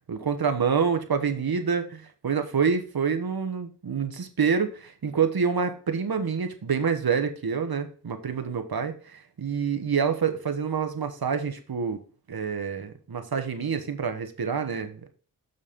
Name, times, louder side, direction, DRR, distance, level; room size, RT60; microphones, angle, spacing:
voice 1, 0.1-12.0 12.3-15.1, right 6 dB, 65° right, 8 dB, 1.3 m, -27 dB
7.0 x 6.3 x 3.7 m, 0.38 s
cardioid pair, 55°, 39 cm